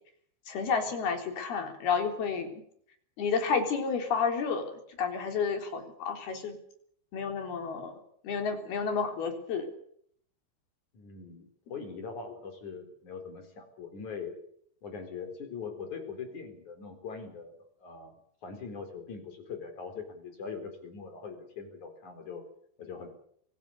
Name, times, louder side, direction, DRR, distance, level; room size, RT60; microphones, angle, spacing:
voice 1, 0.5-2.5 3.2-4.7 5.0-6.6 7.1-9.7, left 5 dB, 70° left, 6 dB, 5.6 m, -31 dB
voice 2, 10.9-14.3 14.8-18.1 18.4-22.4 22.8-23.1, left 5 dB, 50° left, 7 dB, 5.3 m, -42 dB
25.0 x 16.0 x 8.3 m, 0.64 s
omnidirectional pair, 4.7 m